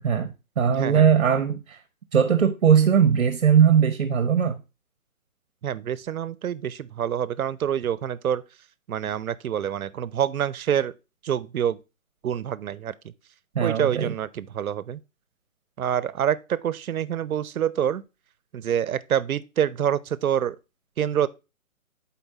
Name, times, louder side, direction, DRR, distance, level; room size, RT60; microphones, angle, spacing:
voice 1, 0.0-1.8 2.1-4.6 13.5-14.1, right 7 dB, 60° right, 0.8 m, -20 dB
voice 2, 0.7-1.1 5.6-8.4 8.9-10.9 11.2-11.8 12.2-12.9 13.6-15.0 15.8-18.0 18.5-20.6 21.0-21.3, right 9 dB, 90° right, 0.6 m, -26 dB
7.2 x 4.4 x 4.1 m
hypercardioid pair, 170°, 41 cm